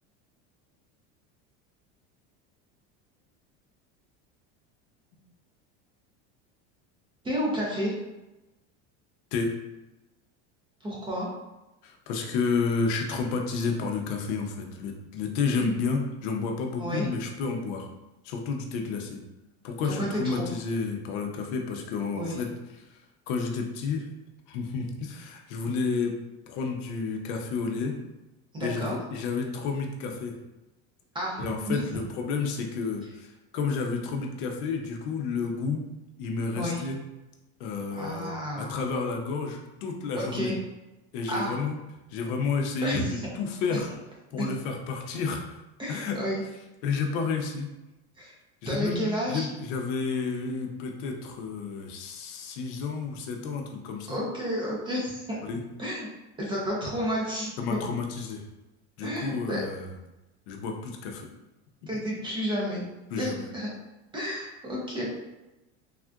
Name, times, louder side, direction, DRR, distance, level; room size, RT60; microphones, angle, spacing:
voice 1, 7.2-7.9 10.8-11.3 16.8-17.1 19.8-20.5 22.1-22.4 28.5-29.0 31.1-31.8 36.5-36.8 37.9-38.7 40.1-40.6 41.3-41.5 42.8-43.2 45.8-46.4 48.2-48.3 48.7-49.5 54.1-55.2 55.8-56.1 56.4-57.8 59.0-59.6 61.9-62.8 63.2-63.7 64.1-65.0, equal, 15° right, -4 dB, 0.5 m, -31 dB
voice 2, 11.8-17.9 18.2-19.2 19.6-22.5 22.9-23.0 23.3-24.1 24.5-26.2 26.5-27.9 28.6-30.4 31.4-35.8 36.2-37.0 37.6-38.3 38.6-40.5 41.1-41.8 42.1-43.1 43.3-43.9 44.3-45.6 45.9-46.2 46.8-47.7 48.6-54.2 55.4-55.6 57.6-58.4 59.0-59.9 60.5-61.3 63.1-63.4, left 4 dB, 65° left, 3 dB, 0.6 m, -31 dB
3.5 x 2.4 x 2.3 m, 0.99 s
cardioid pair, 150°, 35 cm